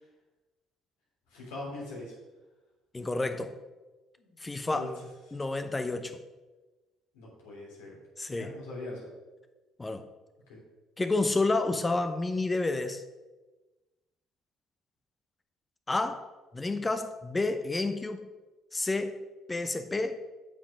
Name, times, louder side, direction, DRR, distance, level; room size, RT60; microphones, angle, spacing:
voice 1, 1.3-2.1 4.2-4.3 4.7-4.9 7.1-8.0 8.3-9.1 10.5-10.6, left 2 dB, 75° left, -4 dB, 3.1 m, -41 dB
voice 2, 2.9-3.5 4.4-4.9 5.3-6.2 8.2-8.5 9.8-10.1 11.0-13.0 15.9-16.2 16.5-18.3 18.7-19.2 19.5-20.2, left 2 dB, 20° left, 9 dB, 0.8 m, -30 dB
8.5 x 6.0 x 4.9 m, 1.2 s
hypercardioid pair, 55°, 0 cm